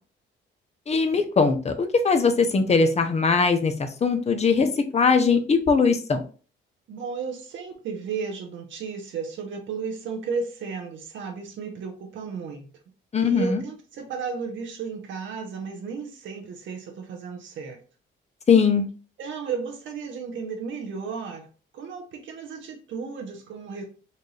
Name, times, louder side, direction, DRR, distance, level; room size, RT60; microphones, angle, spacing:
voice 1, 0.9-6.2 13.1-13.6 18.5-18.9, left 5 dB, 35° left, 0.8 m, -21 dB
voice 2, 6.9-12.6 13.2-17.8 19.2-21.5 21.7-23.8, right 5 dB, 75° right, 1.0 m, -34 dB
4.3 x 2.6 x 3.2 m
cardioid pair, 90°, 20 cm